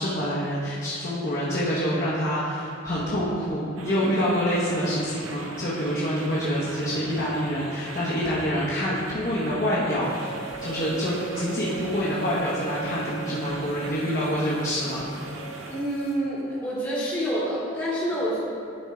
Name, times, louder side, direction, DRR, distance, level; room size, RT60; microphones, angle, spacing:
voice 1, 0.0-15.1, equal, 45° left, -8 dB, 1.0 m, -26 dB
sound 1, 3.8-15.8, right 2 dB, 85° right, 0.8 m, -40 dB
sound 2, 10.0-16.1, right 7 dB, 15° right, 0.9 m, -39 dB
voice 2, 15.7-18.4, equal, 15° left, -10 dB, 1.2 m, -27 dB
10.5 x 3.6 x 4.4 m, 2.5 s
head